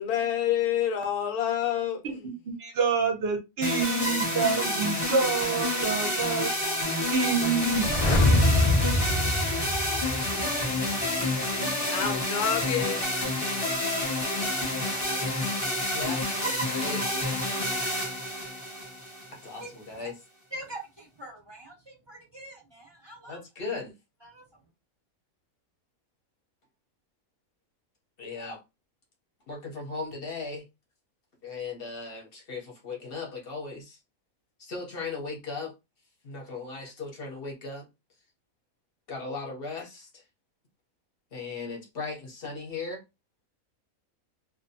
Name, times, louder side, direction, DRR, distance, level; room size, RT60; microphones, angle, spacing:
voice 1, 0.0-2.3 11.9-13.0, left 10 dB, 90° left, 1.1 m, -28 dB
voice 2, 2.4-6.5 7.1-8.2, right 4 dB, 60° right, 0.7 m, -27 dB
sound 1, 3.6-19.6, left 1 dB, 15° left, 0.8 m, -29 dB
sound 2, 7.7-10.6 10.9-11.0, left 1 dB, 70° left, 0.3 m, -24 dB
voice 3, 15.9-17.1 19.3-20.1 23.3-23.9 28.2-28.6 29.5-30.6 31.4-34.0 34.6-35.7 36.2-37.9 39.1-40.2 41.3-43.0, left 4 dB, 50° left, 0.8 m, -37 dB
voice 4, 20.5-23.4 24.2-24.4, right 1 dB, 20° right, 0.8 m, -43 dB
2.6 x 2.2 x 2.6 m
omnidirectional pair, 1.5 m